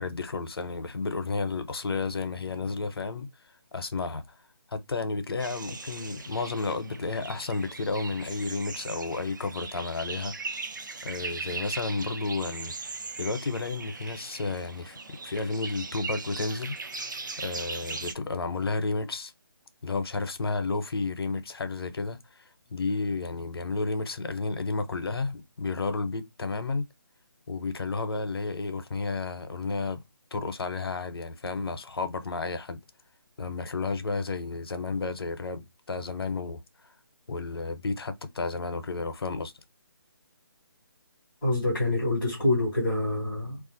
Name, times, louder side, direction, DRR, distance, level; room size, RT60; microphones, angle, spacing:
voice 1, 0.0-4.4 4.7-10.3 11.0-12.7 13.2-16.8 17.4-19.3 19.8-22.4 22.7-26.9 27.5-30.0 30.3-32.8 33.4-36.6 37.3-39.5, left 3 dB, 85° left, 0.7 m, -32 dB
sound 1, 5.4-18.1, right 4 dB, 55° right, 0.5 m, -39 dB
voice 2, 41.4-43.6, left 2 dB, ahead, 0.3 m, -26 dB
2.4 x 2.4 x 3.8 m
hypercardioid pair, 175°, 12 cm